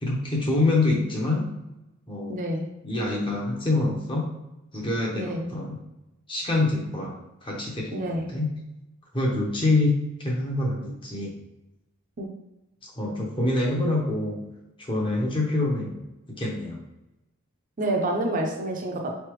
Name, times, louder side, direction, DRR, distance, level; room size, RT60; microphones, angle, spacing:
voice 1, 0.0-1.5 2.1-2.4 2.8-4.3 4.7-5.8 6.3-7.2 7.4-8.5 9.1-11.3 12.8-14.4 14.8-15.9 16.3-16.8, left 2 dB, 25° left, -2 dB, 0.8 m, -26 dB
voice 2, 2.3-2.7 5.1-5.4 7.9-8.3 12.2-12.3 17.8-19.1, right 1 dB, 35° right, 1 dB, 0.5 m, -28 dB
4.0 x 3.3 x 3.1 m, 0.96 s
head